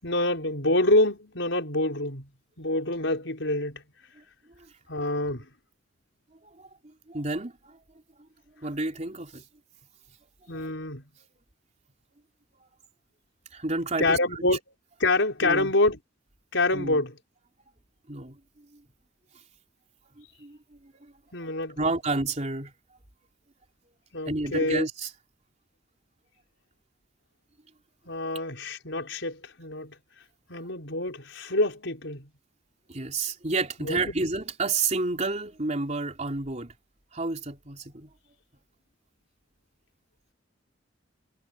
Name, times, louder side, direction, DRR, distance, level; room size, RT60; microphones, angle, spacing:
voice 1, 0.0-2.3 2.6-3.8 4.9-5.5 10.5-11.0 14.0-14.6 15.0-16.0 16.5-17.1 21.3-21.9 24.1-24.9 28.1-30.0 30.5-32.3 33.9-34.0, left 2 dB, 70° left, 5.3 m, -26 dB
voice 2, 6.4-7.8 8.2-8.3 8.6-9.4 10.5-10.7 13.5-14.4 15.4-15.7 16.7-17.0 18.1-18.8 20.2-21.1 21.8-22.7 24.3-25.1 32.9-36.7 37.1-38.1, right 3 dB, 35° right, 3.6 m, -31 dB
head